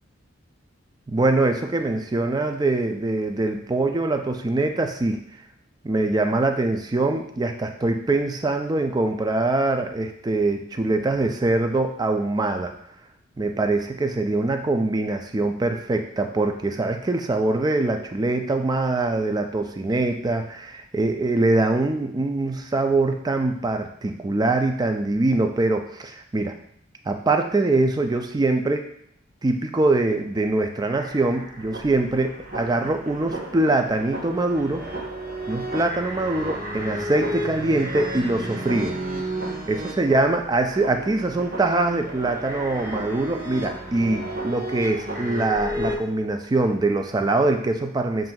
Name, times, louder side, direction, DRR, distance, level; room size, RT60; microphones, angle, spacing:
voice 1, 1.1-5.2 5.8-12.7 13.4-26.6 27.1-28.9 29.4-34.9 35.5-39.0 39.7-48.3, right 2 dB, 20° right, 5 dB, 0.3 m, -23 dB
sound 1, 30.9-46.0, right 1 dB, 50° right, 1.0 m, -33 dB
7.4 x 2.6 x 2.3 m, 0.70 s
head